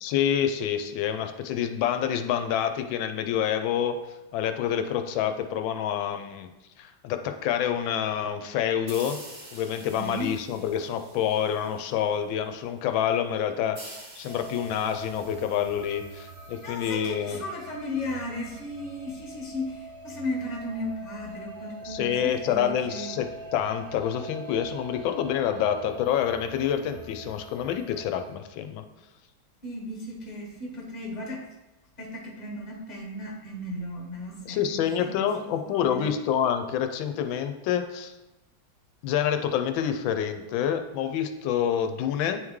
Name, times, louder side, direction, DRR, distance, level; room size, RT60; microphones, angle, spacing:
voice 1, 0.0-4.0 4.3-6.5 6.8-9.2 9.5-13.8 14.2-17.4 21.8-28.8 34.5-38.1 39.0-42.4, left 9 dB, 80° left, 7 dB, 1.3 m, -27 dB
sound 1, 8.9-12.3 13.7-17.2, right 1 dB, 35° right, 0.8 m, -48 dB
voice 2, 9.9-10.3 16.6-23.1 29.6-31.5 32.0-36.1, left 1 dB, 25° left, -2 dB, 1.1 m, -35 dB
sound 2, 14.3-28.4, right 1 dB, 70° right, 1.5 m, -43 dB
9.3 x 3.2 x 3.6 m, 1.0 s
omnidirectional pair, 2.2 m